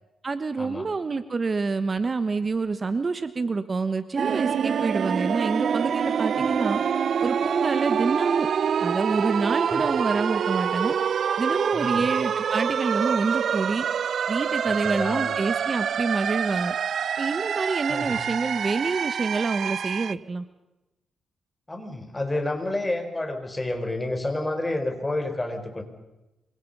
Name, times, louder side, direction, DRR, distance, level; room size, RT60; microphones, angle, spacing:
voice 1, 0.2-6.8 7.2-8.5 8.8-11.0 11.4-13.9 14.3-16.7 17.2-20.4, right 4 dB, 35° right, 11 dB, 1.2 m, -27 dB
sound 1, 4.2-20.1, right 7 dB, 60° right, 0.7 m, -26 dB
voice 2, 11.7-12.1 14.6-15.3 17.9-18.2 21.7-25.8, left 2 dB, 15° left, 6 dB, 4.6 m, -30 dB
27.5 x 25.0 x 5.5 m, 0.98 s
cardioid pair, 105°, 0 cm